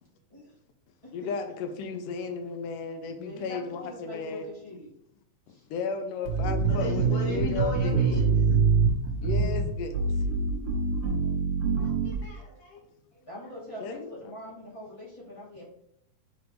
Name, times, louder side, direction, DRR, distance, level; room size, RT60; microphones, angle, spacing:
voice 1, 1.1-4.5 5.5-8.0 9.2-10.0 13.8-14.3, left 4 dB, 80° left, 2.0 m, -34 dB
voice 2, 3.1-4.9 5.5-5.6 13.3-15.7, left 1 dB, 10° left, 1.9 m, -43 dB
sound 1, 6.3-12.3, right 4 dB, 70° right, 2.8 m, -25 dB
voice 3, 6.7-8.5 11.1-11.3 11.8-12.8 13.1-13.2, equal, 55° left, 2.7 m, -37 dB
6.8 x 4.9 x 3.0 m
omnidirectional pair, 4.1 m